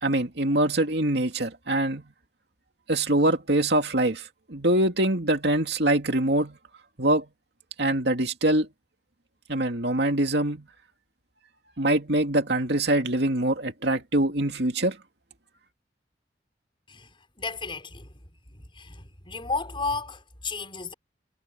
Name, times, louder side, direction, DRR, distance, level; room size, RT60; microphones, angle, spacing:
voice 1, 0.0-2.0 2.9-6.6 7.0-7.3 7.8-8.7 9.5-10.7 11.8-15.0, right 1 dB, 65° right, 2.7 m, -24 dB
voice 2, 16.9-18.2 18.5-20.9, left 4 dB, 30° left, 6.2 m, -34 dB
head